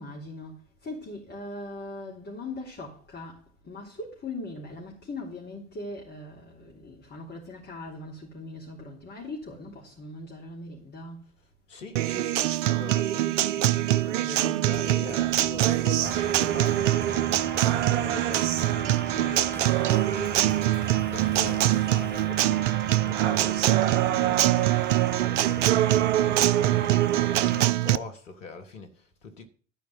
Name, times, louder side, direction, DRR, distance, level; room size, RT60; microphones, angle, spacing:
voice 1, 0.0-11.3, left 2 dB, 30° left, 3.6 m, -40 dB
voice 2, 11.4-29.5, left 4 dB, 80° left, 1.9 m, -43 dB
Acoustic guitar, 12.0-28.0, right 14 dB, 75° right, 0.6 m, -24 dB
Drum kit / Snare drum / Bass drum, 14.7-22.4, left 2 dB, 5° left, 2.2 m, -47 dB
sound 1, 16.0-27.7, right 6 dB, 30° right, 1.1 m, -36 dB
12.0 x 5.1 x 8.1 m
hypercardioid pair, 70°, 37 cm